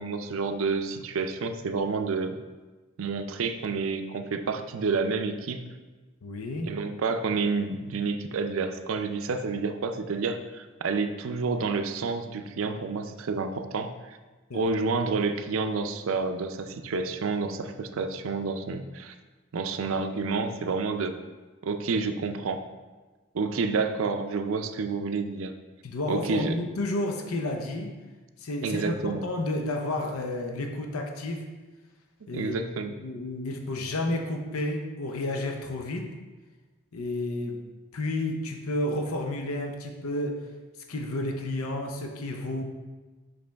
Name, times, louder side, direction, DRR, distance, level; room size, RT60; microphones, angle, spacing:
voice 1, 0.0-2.4 3.0-5.6 6.6-14.2 14.5-19.1 19.5-21.2 21.6-22.7 23.3-25.5 26.1-26.6 28.6-29.2 32.3-32.9, right 4 dB, 70° right, 8 dB, 0.4 m, -29 dB
voice 2, 6.2-6.7 14.5-14.6 25.8-27.9 28.4-31.4 32.3-32.6 33.0-36.1 36.9-37.6 37.9-40.4 40.9-42.6, left 1 dB, 85° left, 3 dB, 0.6 m, -31 dB
5.8 x 5.2 x 3.4 m, 1.2 s
head